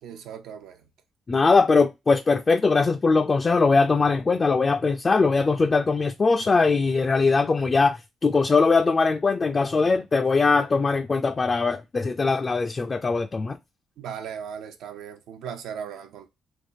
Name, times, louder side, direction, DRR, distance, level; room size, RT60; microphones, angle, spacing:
voice 1, 0.0-0.9 14.0-16.3, right 8 dB, 85° right, 0.7 m, -37 dB
voice 2, 1.3-13.6, left 4 dB, 30° left, 0.3 m, -21 dB
3.5 x 3.0 x 2.6 m
cardioid pair, 90°, 0 cm